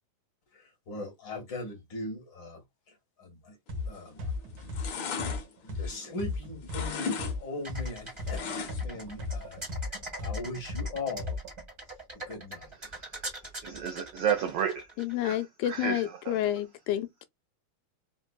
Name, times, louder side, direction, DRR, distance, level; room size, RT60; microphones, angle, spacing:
voice 1, 0.5-3.6 3.9-4.9 5.2-9.6 10.2-11.4 12.1-12.7 13.4-13.5, left 2 dB, 45° left, 1.8 m, -40 dB
sound 1, 3.7-3.9 4.2-7.9 8.2-11.6, left 3 dB, 55° right, 1.7 m, -35 dB
sound 2, 3.9-4.2 4.5-6.3 6.6-7.3 7.6-9.0 9.4-9.5, left 5 dB, 65° left, 1.2 m, -36 dB
sound 3, 7.6-15.3, right 1 dB, 20° right, 0.7 m, -42 dB
voice 2, 13.6-14.8 15.2-16.4, right 8 dB, 85° right, 1.3 m, -31 dB
voice 3, 15.0-17.3, left 12 dB, 85° left, 1.9 m, -30 dB
4.8 x 2.6 x 2.2 m
omnidirectional pair, 3.4 m